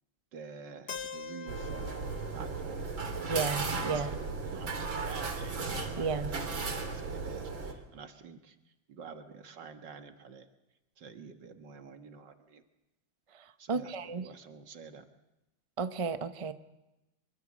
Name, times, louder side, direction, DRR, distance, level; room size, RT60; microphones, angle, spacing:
voice 1, 0.3-2.0 2.3-8.6 8.9-10.5 11.0-12.6 13.6-15.0, right 5 dB, 65° right, 7 dB, 2.2 m, -49 dB
Keyboard (musical), 0.9-4.8, left 5 dB, 45° left, 1.0 m, -46 dB
sound 1, 1.5-7.7, right 4 dB, 80° right, 3.6 m, -36 dB
voice 2, 3.3-4.1 6.0-6.3 13.3-14.3 15.8-16.5, right 5 dB, 30° right, 10 dB, 0.6 m, -33 dB
24.5 x 23.5 x 7.5 m, 0.96 s
omnidirectional pair, 2.1 m